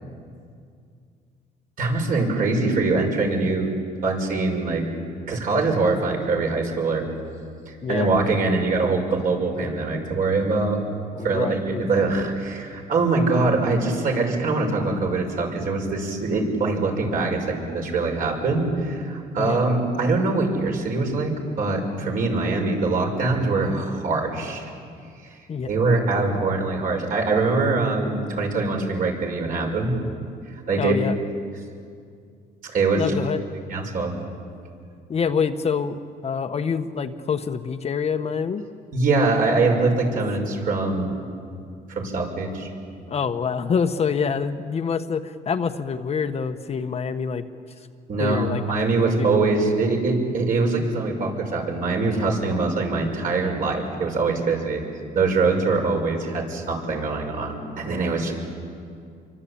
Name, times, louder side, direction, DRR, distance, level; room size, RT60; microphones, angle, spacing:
voice 1, 1.8-3.7 4.0-4.8 5.3-7.0 7.7-10.8 11.2-24.7 25.7-29.9 30.7-31.0 32.6-33.1 33.7-34.2 38.9-41.2 41.9-42.7 48.1-54.8 55.1-58.3, right 3 dB, 55° right, 1 dB, 6.4 m, -23 dB
voice 2, 11.1-12.1 19.4-19.6 25.5-25.7 30.8-31.1 32.9-33.4 35.1-36.0 36.2-38.6 43.1-47.4 48.2-49.5, left 6 dB, 40° left, 7 dB, 1.2 m, -26 dB
27.5 x 24.0 x 8.7 m, 2.3 s
cardioid pair, 110°, 17 cm